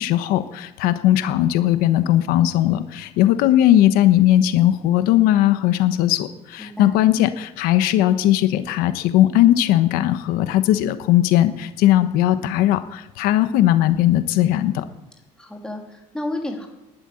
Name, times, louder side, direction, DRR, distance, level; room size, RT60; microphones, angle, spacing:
voice 1, 0.0-14.8, left 13 dB, 85° left, 11 dB, 1.1 m, -18 dB
voice 2, 6.6-7.0 15.4-16.7, left 1 dB, 5° left, 1 dB, 2.9 m, -31 dB
13.0 x 11.5 x 9.8 m, 0.96 s
cardioid pair, 140°, 15 cm